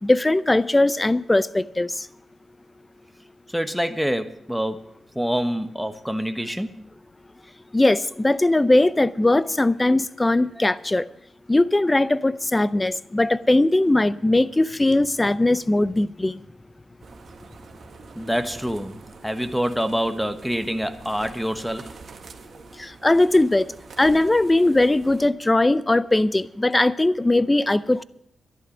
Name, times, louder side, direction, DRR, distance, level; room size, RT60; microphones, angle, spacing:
voice 1, 0.0-2.1 7.7-11.1 11.5-16.4 22.8-23.7 24.0-28.0, left 2 dB, 20° left, 0.6 m, -20 dB
voice 2, 3.5-6.8 18.1-22.0, equal, ahead, 1.1 m, -26 dB
sound 1, 17.0-25.3, right 4 dB, 65° right, 1.6 m, -45 dB
11.5 x 11.5 x 6.2 m
supercardioid pair, 55°, 0 cm